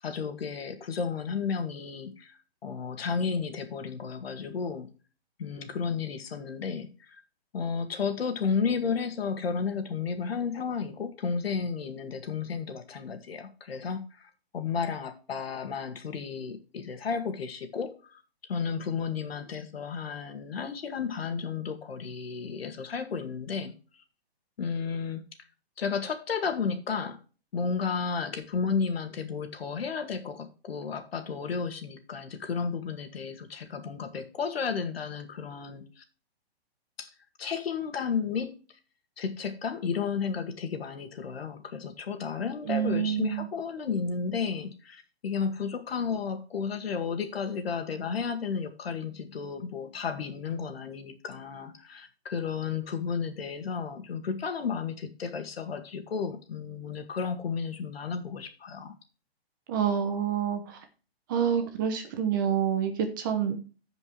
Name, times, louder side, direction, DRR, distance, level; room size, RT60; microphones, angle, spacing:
voice 1, 0.0-4.9 5.4-7.2 7.5-18.2 18.5-23.7 24.6-25.2 25.8-27.2 27.5-36.0 37.0-37.1 37.4-38.6 39.2-58.9, left 6 dB, 70° left, 7 dB, 2.1 m, -33 dB
voice 2, 42.7-43.5 59.7-60.8 61.3-63.6, right 8 dB, 20° right, 6 dB, 0.8 m, -27 dB
15.5 x 5.3 x 3.2 m, 0.35 s
hypercardioid pair, 165°, 32 cm